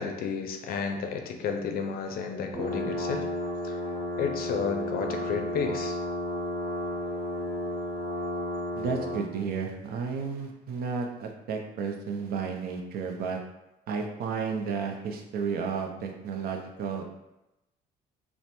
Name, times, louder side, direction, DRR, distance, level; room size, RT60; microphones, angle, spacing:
voice 1, 0.0-3.3 3.6-3.8 4.2-6.0, left 6 dB, 60° left, 4 dB, 0.4 m, -32 dB
sound 1, 2.5-9.3, equal, 30° right, 0.9 m, -32 dB
voice 2, 8.8-13.4 13.9-17.0, right 5 dB, 65° right, 3 dB, 0.5 m, -32 dB
3.1 x 2.0 x 2.9 m, 0.94 s
cardioid pair, 110°, 17 cm